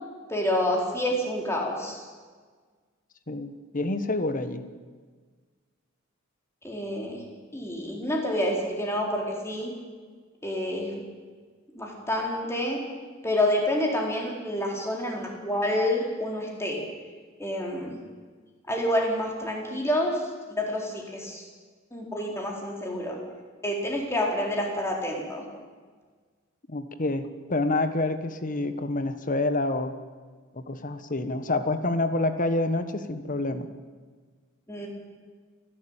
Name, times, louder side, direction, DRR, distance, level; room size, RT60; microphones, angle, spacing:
voice 1, 0.3-2.0 6.6-7.2 7.5-9.7 10.4-11.0 11.7-12.8 13.2-16.8 17.4-18.0 18.7-20.2 20.5-21.4 21.9-23.2 23.6-25.4 34.7-34.9, left 1 dB, 15° left, 0 dB, 4.1 m, -28 dB
voice 2, 3.3-4.6 26.7-30.0 30.5-33.7, left 2 dB, 40° left, 10 dB, 1.3 m, -28 dB
29.0 x 11.5 x 8.9 m, 1.5 s
head